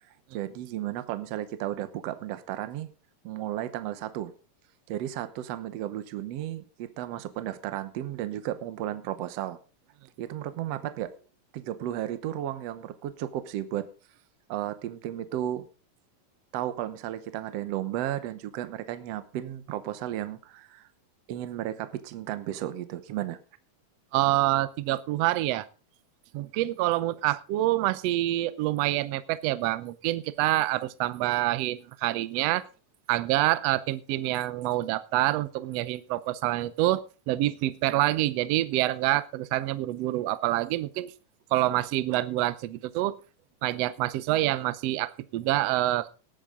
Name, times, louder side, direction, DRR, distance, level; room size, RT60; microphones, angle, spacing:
voice 1, 0.3-2.9 3.2-4.3 4.9-9.6 10.2-11.1 11.5-13.9 14.5-15.7 16.5-20.9 21.3-23.4, right 12 dB, 65° right, 12 dB, 1.7 m, -34 dB
voice 2, 24.1-25.7 26.3-32.6 33.1-41.1 41.5-43.1 43.6-46.1, right 16 dB, 85° right, 16 dB, 1.4 m, -26 dB
18.5 x 8.9 x 3.8 m, 0.35 s
omnidirectional pair, 3.8 m